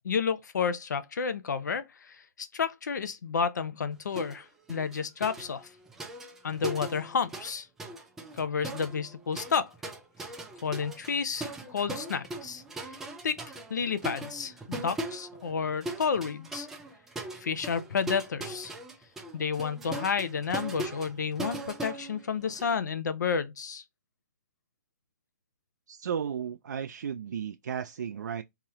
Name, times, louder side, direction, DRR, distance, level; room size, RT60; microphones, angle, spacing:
voice 1, 0.0-5.7 6.4-7.7 8.4-9.7 10.6-13.0 13.2-13.4 13.7-16.7 17.4-18.7 19.3-23.8, left 6 dB, 80° left, 0.7 m, -31 dB
sound 1, 4.2-4.4 4.7-7.5 7.8-22.8, right 2 dB, 5° right, 0.3 m, -40 dB
voice 2, 25.9-28.4, right 8 dB, 80° right, 0.4 m, -34 dB
3.6 x 3.0 x 2.9 m
hypercardioid pair, 165°, 9 cm